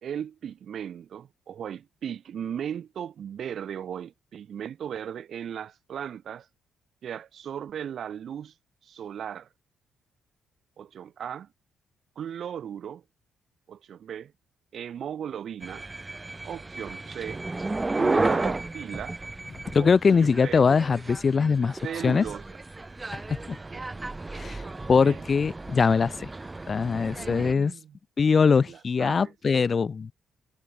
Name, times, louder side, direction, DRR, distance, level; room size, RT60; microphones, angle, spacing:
voice 1, 0.0-6.5 7.0-8.5 8.8-9.5 10.8-11.5 12.2-13.0 13.7-14.3 14.7-15.9 16.4-17.4 17.9-19.2 19.8-19.9 20.2-20.7 21.8-22.4 23.5-23.9 24.6-25.2 27.1-28.0 28.6-29.3, right 9 dB, 60° right, 1.8 m, -37 dB
sound 1, 15.6-27.5, right 2 dB, 20° right, 4.6 m, -33 dB
voice 2, 19.7-22.2 23.3-23.6 24.3-24.6 24.9-26.3 26.7-27.7 28.2-30.1, left 5 dB, 40° left, 0.4 m, -22 dB
cardioid pair, 90°, 0 cm